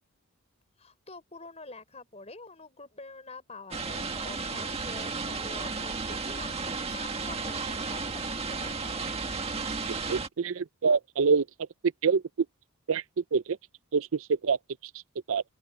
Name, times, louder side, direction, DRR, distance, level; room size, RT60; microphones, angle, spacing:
voice 1, 0.8-8.2 8.5-9.1, left 3 dB, 30° left, 5.4 m, -46 dB
sound 1, 3.7-10.3, right 4 dB, 30° right, 1.8 m, -33 dB
voice 2, 9.9-11.4 12.0-12.2 12.9-13.0 13.3-13.4 13.9-14.1 14.4-14.6 15.3-15.4, right 5 dB, 70° right, 0.5 m, -25 dB
open air
head